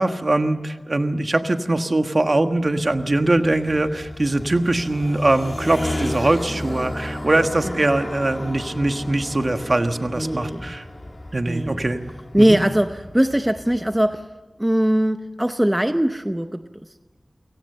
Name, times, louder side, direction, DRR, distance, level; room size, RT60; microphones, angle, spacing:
voice 1, 0.0-10.8 11.3-12.0 12.4-12.6, right 2 dB, 45° right, 7 dB, 1.4 m, -22 dB
sound 1, 2.6-14.2, left 1 dB, 30° left, 2.4 m, -33 dB
voice 2, 10.2-10.7 11.4-11.8 12.3-14.3 14.6-16.7, right 1 dB, 10° right, 9 dB, 0.7 m, -21 dB
29.5 x 17.5 x 6.8 m, 1.3 s
wide cardioid pair, 70°, 0 cm